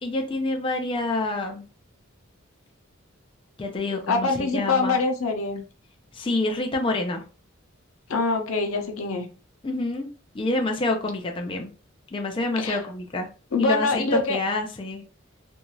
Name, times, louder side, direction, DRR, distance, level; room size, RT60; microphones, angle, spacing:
voice 1, 0.0-1.6 3.6-5.0 6.1-7.2 9.6-10.1 10.3-11.7 12.1-13.3 13.6-15.0, left 2 dB, 25° left, 3 dB, 0.4 m, -27 dB
voice 2, 4.1-5.6 8.1-9.3 12.6-12.8 13.5-14.4, left 3 dB, 90° left, 4 dB, 0.7 m, -24 dB
2.6 x 2.4 x 3.0 m, 0.35 s
head